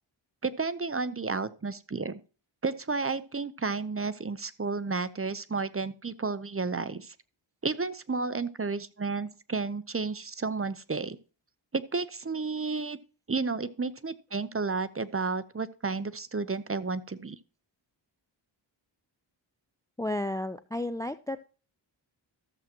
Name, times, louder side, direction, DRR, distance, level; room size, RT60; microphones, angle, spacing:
voice 1, 0.4-2.2 2.6-7.1 7.6-11.2 11.7-13.0 13.3-17.4, right 4 dB, 30° right, 15 dB, 0.7 m, -32 dB
voice 2, 20.0-21.5, left 1 dB, 10° left, 14 dB, 0.4 m, -32 dB
13.5 x 7.4 x 2.9 m, 0.36 s
cardioid pair, 50°, 48 cm